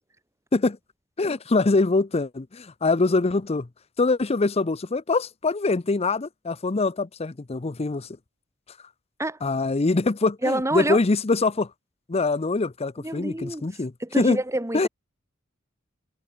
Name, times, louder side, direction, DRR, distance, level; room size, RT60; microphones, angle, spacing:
voice 1, 1.2-3.7 4.0-8.1 9.4-11.7 12.1-14.4 14.7-14.9, left 3 dB, 30° left, 0.6 m, -24 dB
voice 2, 10.4-11.0 13.0-13.7 14.0-14.9, right 1 dB, 15° right, 1.9 m, -27 dB
head